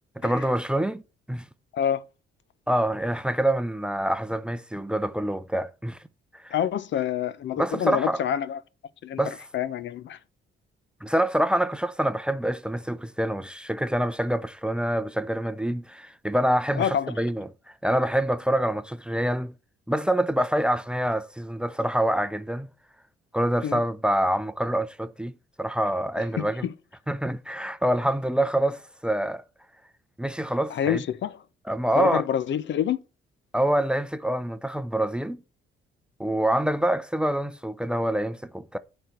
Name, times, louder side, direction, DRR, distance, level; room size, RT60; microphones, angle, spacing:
voice 1, 0.2-1.0 1.3-1.4 2.7-6.0 6.3-6.5 7.6-8.2 9.2-9.4 11.0-17.5 17.8-19.5 19.9-22.7 23.3-25.3 25.6-26.7 27.1-29.4 30.2-31.0 31.7-32.2 33.5-35.4 36.2-38.8, right 1 dB, 5° right, 0.6 m, -26 dB
voice 2, 6.5-8.6 9.0-10.2 16.8-17.1 23.6-23.8 26.4-26.7 30.7-31.4 31.9-33.0, left 9 dB, 65° left, 0.8 m, -27 dB
8.9 x 4.3 x 6.6 m
cardioid pair, 90°, 20 cm